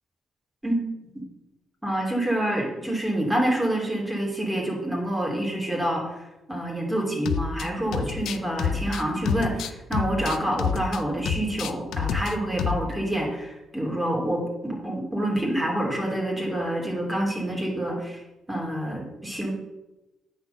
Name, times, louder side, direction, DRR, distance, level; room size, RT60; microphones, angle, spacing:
voice 1, 1.8-6.1 6.5-18.2 18.5-19.5, right 1 dB, 10° right, -2 dB, 2.9 m, -27 dB
sound 1, 7.3-7.7 7.9-11.0 11.3-12.3 12.6-12.9, left 7 dB, 75° left, 0.5 m, -28 dB
9.4 x 4.3 x 6.8 m, 1.0 s
cardioid pair, 90°, 0 cm